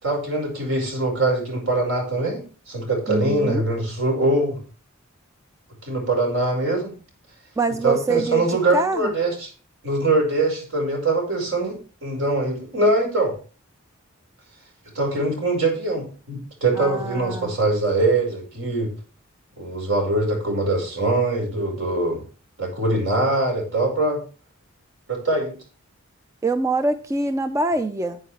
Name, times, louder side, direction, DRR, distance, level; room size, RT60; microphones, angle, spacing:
voice 1, 0.0-2.4 2.7-4.6 5.8-6.9 7.8-9.5 9.8-11.8 12.0-13.3 14.9-18.9 19.6-22.2 22.6-24.2 25.1-25.5, right 2 dB, 65° right, 2 dB, 5.0 m, -22 dB
voice 2, 3.1-3.6 7.6-9.1 16.8-17.6 26.4-28.2, right 3 dB, 15° right, 9 dB, 0.4 m, -24 dB
9.8 x 9.3 x 3.3 m, 0.36 s
head